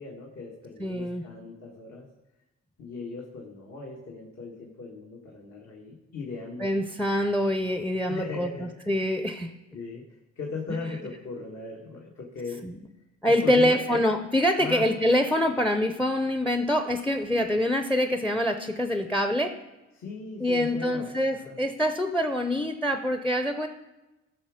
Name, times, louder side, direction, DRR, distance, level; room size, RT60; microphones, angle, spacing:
voice 1, 0.0-2.1 2.8-6.7 8.1-8.9 9.7-10.1 10.3-12.6 13.2-14.0 14.6-14.9 19.9-21.6, left 4 dB, 60° left, -2 dB, 1.7 m, -38 dB
voice 2, 0.8-1.2 6.6-9.5 10.7-10.8 12.6-12.8 13.2-19.5 20.4-23.7, left 1 dB, 5° left, 8 dB, 0.6 m, -25 dB
14.0 x 6.2 x 5.0 m, 1.0 s
cardioid pair, 90°, 30 cm